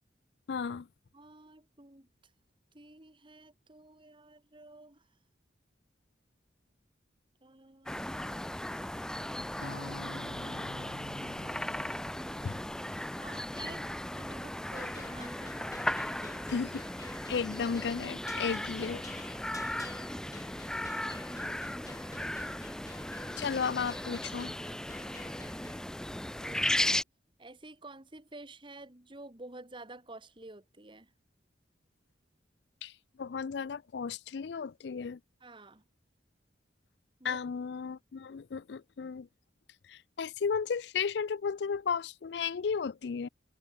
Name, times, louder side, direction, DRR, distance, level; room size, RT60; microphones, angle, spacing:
voice 1, 0.5-0.9 12.4-12.6 16.5-16.8 17.3-19.0 23.4-24.5 32.8-32.9 33.2-35.2 37.2-39.3 39.9-43.3, left 6 dB, 65° left, 0.4 m, -34 dB
voice 2, 1.1-2.1 2.7-5.1 7.4-8.3 9.8-11.7 12.3-12.5 12.9-16.5 19.3-19.6 22.1-22.4 26.4-27.0 27.4-31.1 35.4-35.8 37.2-37.4, right 2 dB, 25° right, 1.9 m, -51 dB
sound 1, 7.9-27.0, left 1 dB, 5° left, 0.4 m, -36 dB
sound 2, 9.6-13.8, left 2 dB, 85° left, 1.8 m, -48 dB
sound 3, 14.7-25.8, left 3 dB, 20° left, 1.9 m, -51 dB
head